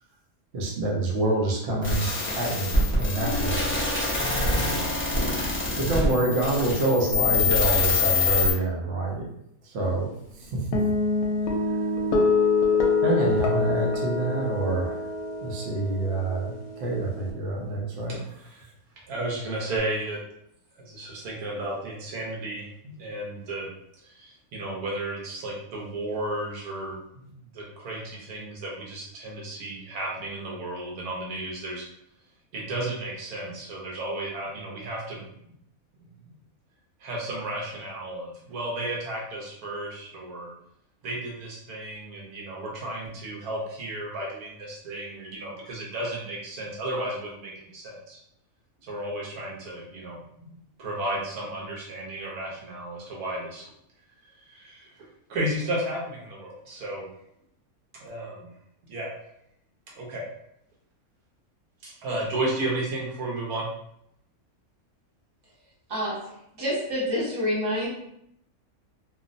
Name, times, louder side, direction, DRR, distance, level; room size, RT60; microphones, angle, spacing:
voice 1, 0.5-2.1 2.3-2.7 3.0-3.7 5.8-9.3 9.6-10.7 11.7-11.8 13.0-15.1 15.4-18.2, right 2 dB, 55° right, -2 dB, 0.8 m, -27 dB
sound 1, 1.8-8.5, left 3 dB, 20° left, 0.3 m, -25 dB
sound 2, 10.7-17.3, left 4 dB, 80° left, 1.0 m, -25 dB
voice 2, 18.1-18.7 19.1-20.2 20.7-23.7 24.0-31.8 32.5-35.5 36.2-36.3 37.0-40.5 41.0-48.2 48.8-53.6 54.4-54.9 55.3-57.1 58.0-58.5 58.9-59.1 60.0-60.2 61.8-63.7, right 1 dB, 85° right, -3 dB, 1.3 m, -33 dB
voice 3, 66.6-67.9, equal, 20° right, -7 dB, 0.7 m, -27 dB
3.0 x 2.0 x 2.5 m, 0.75 s
omnidirectional pair, 1.6 m